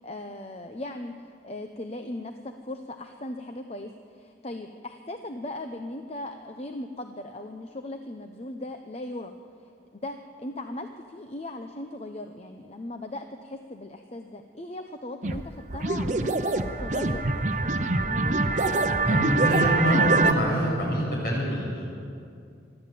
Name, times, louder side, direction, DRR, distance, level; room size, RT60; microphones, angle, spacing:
voice 1, 0.0-9.3 9.6-16.4 16.8-18.6, left 1 dB, 35° left, 6 dB, 0.8 m, -38 dB
sound 1, 15.2-15.4 15.7-20.3, right 3 dB, 40° right, 0.8 m, -24 dB
voice 2, 19.1-21.8, equal, 55° left, -2 dB, 7.2 m, -25 dB
24.0 x 12.5 x 8.5 m, 2.4 s
head